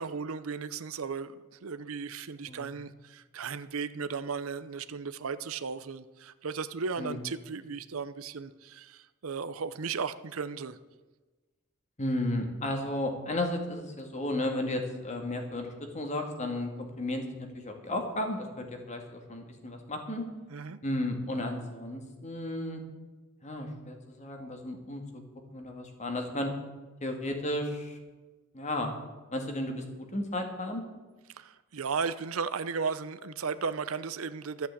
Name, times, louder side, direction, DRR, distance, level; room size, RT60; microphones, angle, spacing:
voice 1, 0.0-1.3 1.6-10.8 20.5-20.8 31.4-34.7, right 5 dB, 80° right, 13 dB, 0.6 m, -35 dB
voice 2, 12.0-20.3 20.8-22.8 23.4-25.2 25.5-26.5 27.0-28.0 28.5-28.9 29.3-30.8, left 1 dB, 35° left, 4 dB, 2.1 m, -34 dB
12.5 x 8.1 x 8.4 m, 1.2 s
head